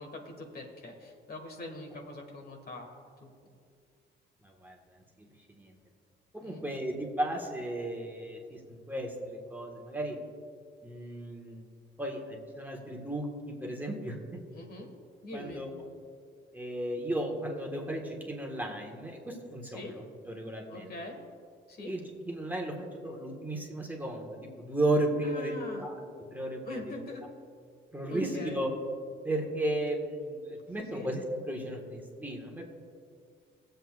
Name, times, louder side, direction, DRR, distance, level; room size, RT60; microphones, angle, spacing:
voice 1, 0.0-2.9 6.4-6.8 14.5-14.9 15.2-15.6 19.6-19.9 20.7-21.2 21.7-21.9 25.2-25.9 26.6-27.2 28.1-28.6 30.9-31.1, left 2 dB, 50° left, 2 dB, 1.6 m, -43 dB
voice 2, 4.4-5.8 6.3-10.2 10.8-11.6 12.0-14.4 15.3-15.7 16.5-20.9 21.9-26.0 26.3-27.0 27.9-28.7 29.2-32.6, right 1 dB, 10° right, -1 dB, 1.5 m, -35 dB
19.0 x 7.9 x 2.4 m, 2.2 s
cardioid pair, 90°, 20 cm